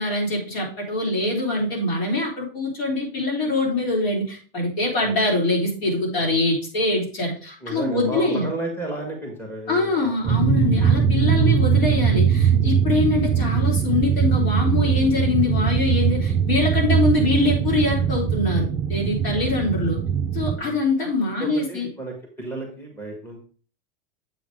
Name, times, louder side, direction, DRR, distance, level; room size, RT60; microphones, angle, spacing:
voice 1, 0.0-8.5 9.7-20.0 20.3-21.9, left 2 dB, 85° left, -2 dB, 3.7 m, -23 dB
voice 2, 7.6-10.3 11.3-11.6 12.9-13.1 16.9-17.1 19.3-19.5 20.6-20.8 21.2-23.4, right 2 dB, 5° left, 0 dB, 1.6 m, -33 dB
sound 1, 10.2-20.6, right 7 dB, 15° right, 0.4 m, -21 dB
7.6 x 3.9 x 4.8 m, 0.40 s
supercardioid pair, 155°, 29 cm